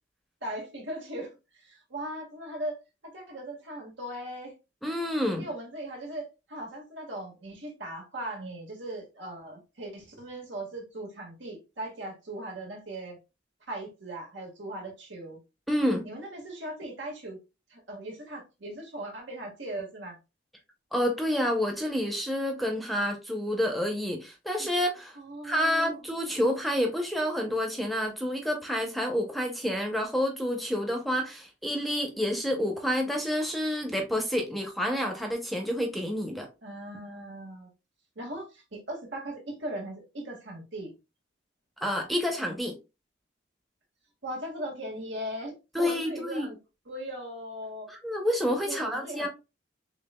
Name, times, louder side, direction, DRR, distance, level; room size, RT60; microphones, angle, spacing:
voice 1, 0.4-2.8 3.0-4.5 5.4-13.2 13.7-15.4 16.0-17.4 17.7-20.2 25.1-26.0 36.6-37.7 38.1-40.9 44.2-46.6 46.8-47.9 48.7-49.3, right 1 dB, 75° right, 1.7 m, -39 dB
voice 2, 4.8-5.5 15.7-16.1 20.9-25.2 25.4-36.5 41.8-42.7 45.7-46.5 47.9-49.3, equal, ahead, 0.6 m, -29 dB
6.6 x 2.4 x 2.2 m
head